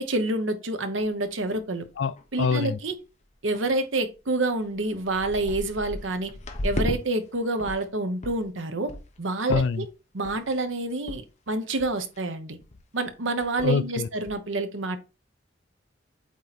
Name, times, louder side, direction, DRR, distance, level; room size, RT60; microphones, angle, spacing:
voice 1, 0.0-1.8 2.3-3.0 3.4-6.3 6.6-8.9 9.2-9.8 10.1-12.6 12.9-15.0, right 2 dB, 80° right, 1.0 m, -28 dB
sound 1, 1.0-1.1 1.6-1.7 1.9-2.4 2.7-2.9 3.5-3.6 4.3-4.4 4.7-7.0 7.3-7.9 8.2-8.4 8.9-9.2 9.5-9.9 10.2-10.6 11.1-11.2 11.5-11.6 11.8-12.2 12.6-12.8 13.1-13.2 13.4-13.8 14.2-14.4, left 1 dB, 35° left, 1.0 m, -34 dB
voice 2, 2.0-2.8 9.5-9.8 13.6-14.1, left 5 dB, 70° left, 0.4 m, -25 dB
8.4 x 3.1 x 4.2 m
head